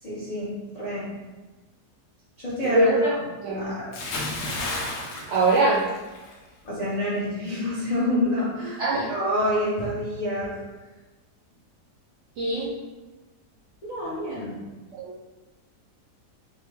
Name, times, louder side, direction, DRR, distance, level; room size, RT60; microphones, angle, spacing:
voice 1, 0.0-1.1 2.4-3.1 3.5-3.9 6.6-10.5 13.8-14.6, left 1 dB, 60° left, -10 dB, 0.4 m, -28 dB
voice 2, 2.6-3.1 3.4-3.7 5.3-5.8 8.8-9.1 12.4-12.7 15.0-15.1, right 2 dB, 75° right, -6 dB, 0.7 m, -22 dB
Bathtub (filling or washing) / Splash splatter, 3.9-6.4 6.7-7.0, left 2 dB, 80° left, 1.1 m, -32 dB
3.5 x 2.0 x 3.2 m, 1.2 s
omnidirectional pair, 1.8 m